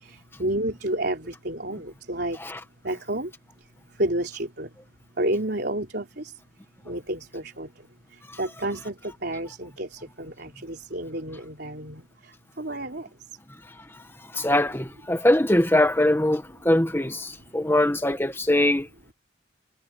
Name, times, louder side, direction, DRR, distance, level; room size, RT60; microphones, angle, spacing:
voice 1, 0.4-2.4 2.8-3.3 4.0-4.7 5.2-6.1 6.9-7.7 8.4-8.9 9.2-12.0 12.6-13.1, right 1 dB, 55° right, 3.9 m, -30 dB
voice 2, 14.3-18.9, left 1 dB, 10° left, 1.6 m, -22 dB
head